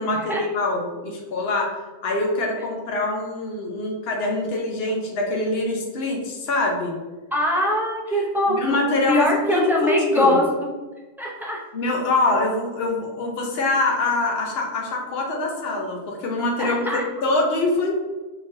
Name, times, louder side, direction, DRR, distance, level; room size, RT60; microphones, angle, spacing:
voice 1, 0.0-1.8 2.0-6.9 8.5-10.4 11.7-17.9, left 2 dB, 60° left, 0 dB, 1.0 m, -24 dB
voice 2, 7.3-10.7 11.2-11.6 16.6-17.0, left 1 dB, 5° right, -4 dB, 0.3 m, -22 dB
3.9 x 3.3 x 2.7 m, 1.2 s
omnidirectional pair, 1.2 m